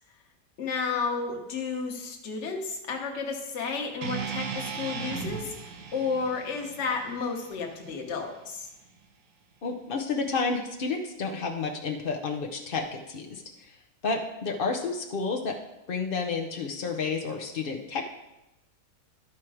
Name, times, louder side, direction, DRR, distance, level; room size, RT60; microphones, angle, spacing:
voice 1, 0.6-8.7, left 5 dB, 45° left, 2 dB, 1.3 m, -32 dB
sound 1, 4.0-8.2, right 6 dB, 85° right, 1.6 m, -37 dB
voice 2, 9.6-13.7 14.0-15.6 15.9-18.1, left 4 dB, 85° left, 2 dB, 0.4 m, -31 dB
12.0 x 4.5 x 4.8 m, 0.94 s
omnidirectional pair, 1.9 m